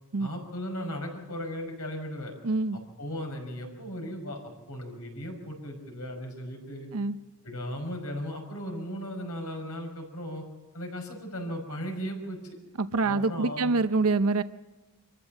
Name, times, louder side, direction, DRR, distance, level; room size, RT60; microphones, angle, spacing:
voice 1, 0.2-2.3 2.7-6.9 7.4-10.4 10.7-12.6 13.0-13.7, equal, 90° left, 2 dB, 5.7 m, -37 dB
voice 2, 2.4-2.8 6.9-7.2 12.8-14.4, right 3 dB, 80° right, 12 dB, 0.6 m, -25 dB
25.0 x 14.5 x 7.2 m, 1.2 s
head